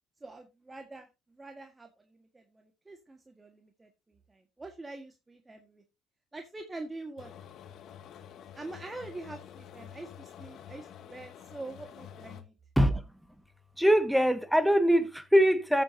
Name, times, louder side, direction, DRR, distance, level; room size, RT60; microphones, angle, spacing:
voice 1, 0.2-5.8 6.3-7.3 8.5-12.5, right 2 dB, 20° right, 1.7 m, -45 dB
sound 1, 7.2-12.4, left 9 dB, 60° left, 1.1 m, -48 dB
voice 2, 13.8-15.8, equal, ahead, 1.7 m, -23 dB
14.5 x 7.5 x 2.8 m
hypercardioid pair, 60°, 0 cm